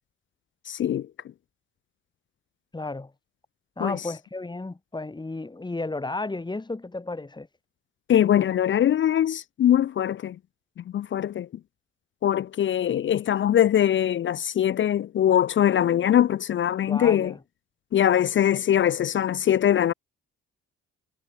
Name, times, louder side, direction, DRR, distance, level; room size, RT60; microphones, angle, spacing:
voice 1, 0.7-1.1 3.8-4.0 8.1-10.4 10.8-11.5 12.2-17.3 17.9-19.9, left 10 dB, 40° left, 0.4 m, -22 dB
voice 2, 2.7-3.1 3.8-7.5 16.9-17.4, left 2 dB, 15° left, 1.6 m, -33 dB
cardioid pair, 90°, 30 cm